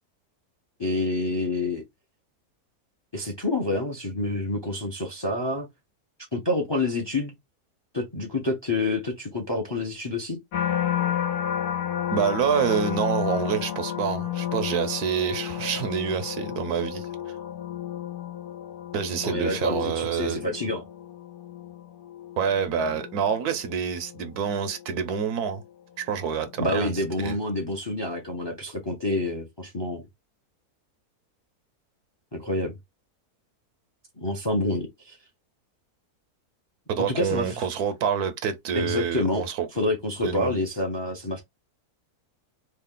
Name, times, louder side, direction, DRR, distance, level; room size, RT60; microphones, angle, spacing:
voice 1, 0.8-1.8 3.1-5.7 6.3-7.4 7.9-10.4 19.2-20.8 26.6-30.1 32.3-32.8 34.2-35.2 37.0-37.6 38.8-39.4 39.7-41.4, left 2 dB, 25° left, 0.6 m, -28 dB
sound 1, 10.5-25.7 26.2-26.7, left 10 dB, 80° left, 1.3 m, -32 dB
voice 2, 12.1-17.1 18.9-20.5 22.4-25.6 26.0-26.9 27.2-27.4 36.9-39.8 40.2-40.5, right 7 dB, 80° right, 1.2 m, -27 dB
3.3 x 2.4 x 3.7 m
omnidirectional pair, 1.6 m